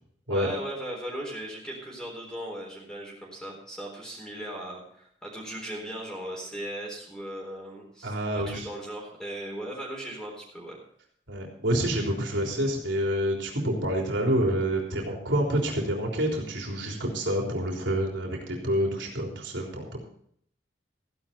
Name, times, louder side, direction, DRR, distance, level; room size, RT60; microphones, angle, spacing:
voice 1, 0.3-10.8, right 1 dB, 5° left, -2 dB, 4.0 m, -38 dB
voice 2, 8.0-8.7 11.3-20.0, right 1 dB, 90° right, 0 dB, 3.7 m, -28 dB
15.5 x 11.0 x 4.4 m, 0.64 s
head